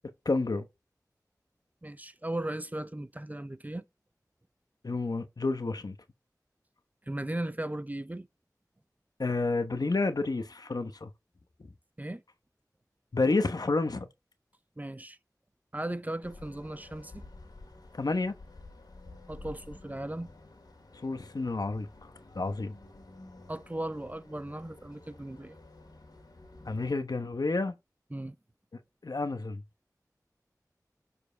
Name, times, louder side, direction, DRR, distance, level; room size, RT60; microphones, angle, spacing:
voice 1, 0.2-0.7 4.8-5.9 9.2-11.1 13.1-14.1 17.9-18.3 21.0-21.9 22.3-22.7 26.7-27.7 29.0-29.6, left 3 dB, 75° left, 1.0 m, -29 dB
voice 2, 1.8-3.8 7.1-8.3 12.0-12.2 14.8-15.2 15.7-17.2 19.3-20.3 23.5-25.6 28.1-28.4, right 1 dB, 25° right, 0.6 m, -37 dB
sound 1, 16.2-26.9, left 2 dB, 90° left, 2.2 m, -51 dB
7.0 x 4.6 x 3.4 m
wide cardioid pair, 45°, 7 cm